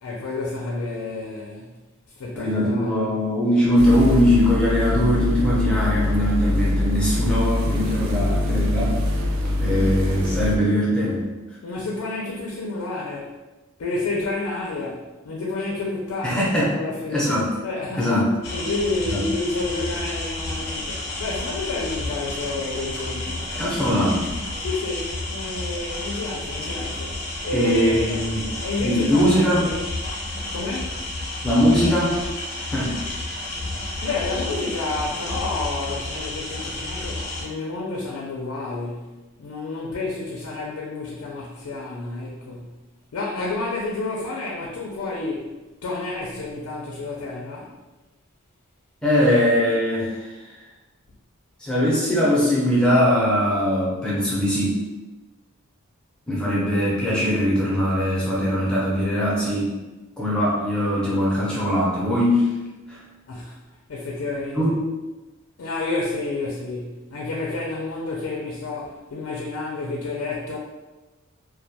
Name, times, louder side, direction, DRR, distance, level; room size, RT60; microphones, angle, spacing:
voice 1, 0.0-1.7 2.2-3.1 11.6-13.4 13.8-16.5 16.8-17.3 17.6-18.1 18.5-24.1 24.6-29.7 30.5-31.0 34.0-39.1 39.4-42.7 43.1-45.5 45.8-47.7 63.3-63.6 63.9-64.7 65.6-70.6, left 2 dB, 85° left, -3 dB, 0.4 m, -30 dB
voice 2, 2.3-9.0 9.6-11.2 16.2-16.8 17.1-17.5 18.0-18.3 19.1-19.2 23.6-24.3 27.5-28.4 28.8-29.6 31.4-32.2 32.7-33.0 49.0-50.4 51.6-54.8 56.3-59.7 60.2-62.5 62.9-63.0 64.5-64.7, equal, 5° left, -7 dB, 0.5 m, -21 dB
sound 1, 3.8-10.6, left 1 dB, 70° right, 0.3 m, -23 dB
sound 2, 18.4-37.4, left 2 dB, 45° left, 0.7 m, -31 dB
2.2 x 2.2 x 2.7 m, 1.1 s
head